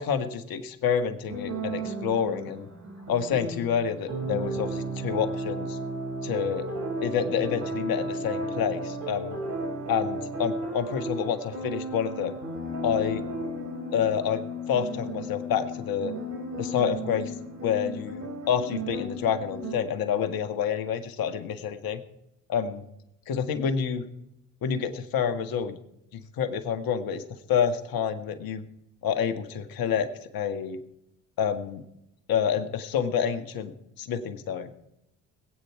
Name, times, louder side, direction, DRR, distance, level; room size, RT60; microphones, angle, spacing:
voice 1, 0.0-2.7 3.1-5.8 6.2-6.7 7.0-9.4 9.9-12.4 12.8-13.3 13.9-16.1 16.6-17.3 17.6-22.0 22.5-22.8 23.3-24.0 24.6-25.8 26.4-27.2 27.5-28.6 29.0-30.1 30.3-30.8 31.4-31.8 32.3-34.7, left 7 dB, 65° left, 9 dB, 1.8 m, -28 dB
sound 1, 1.3-19.7, right 1 dB, 50° right, 5.8 m, -34 dB
21.0 x 8.7 x 4.7 m, 0.83 s
hypercardioid pair, 55°, 39 cm